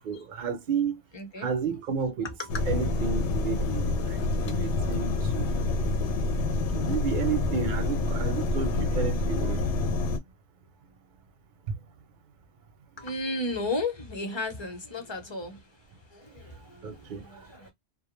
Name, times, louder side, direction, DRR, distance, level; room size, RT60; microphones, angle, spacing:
voice 1, 0.0-1.0 1.4-2.3 2.6-5.9 6.7-9.6 16.8-17.3, right 6 dB, 60° right, 0.6 m, -32 dB
voice 2, 1.1-1.5 2.2-2.5 13.0-15.6 16.1-17.7, left 2 dB, 30° left, 0.7 m, -34 dB
sound 1, 2.5-10.2, left 3 dB, 75° left, 0.8 m, -27 dB
2.2 x 2.1 x 3.0 m
omnidirectional pair, 1.2 m